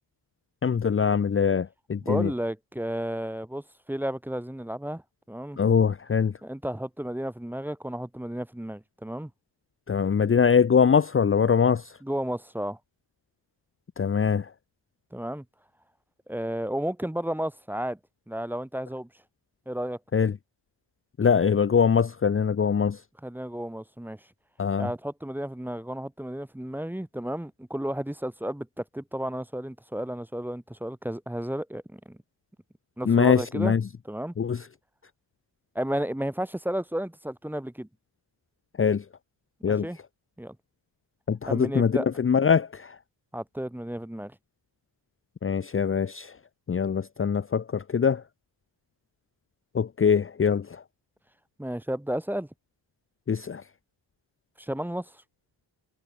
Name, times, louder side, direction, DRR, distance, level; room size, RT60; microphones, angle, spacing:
voice 1, 0.6-2.3 5.6-6.3 9.9-11.8 14.0-14.5 20.1-20.3 21.2-23.0 24.6-24.9 33.0-33.8 34.4-34.6 38.8-39.0 39.6-39.9 41.3-43.0 45.4-46.3 46.7-48.2 49.7-50.8 53.3-53.6, left 6 dB, 30° left, 0.9 m, -23 dB
voice 2, 2.0-3.6 3.9-5.0 5.3-5.6 6.4-9.3 12.0-12.8 15.1-15.4 16.3-18.0 18.3-19.1 19.7-20.0 23.2-24.2 24.8-32.2 33.0-33.7 34.0-34.3 35.7-37.9 39.7-40.0 40.4-40.5 41.5-42.1 43.3-44.3 51.6-52.5 54.6-55.1, equal, 5° right, 1.5 m, -32 dB
wide cardioid pair, 180°, 46 cm